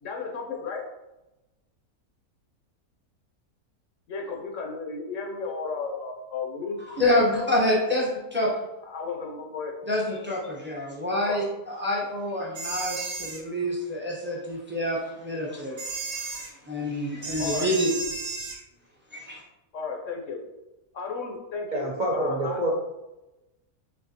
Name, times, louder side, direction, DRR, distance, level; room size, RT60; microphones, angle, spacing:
voice 1, 0.0-0.8 4.1-6.8 7.8-7.9 8.8-9.7 11.2-11.4 17.4-17.7 19.7-20.4 20.9-22.7, left 4 dB, 65° left, 1 dB, 0.8 m, -34 dB
voice 2, 6.8-8.6 9.9-17.9 19.1-19.4, left 1 dB, 10° right, -4 dB, 0.5 m, -27 dB
sound 1, 12.5-13.4 15.8-16.5 17.2-18.6, right 3 dB, 50° right, 0.7 m, -33 dB
voice 3, 21.7-22.7, right 1 dB, 85° right, -3 dB, 0.4 m, -27 dB
4.2 x 3.4 x 2.7 m, 0.99 s
omnidirectional pair, 1.6 m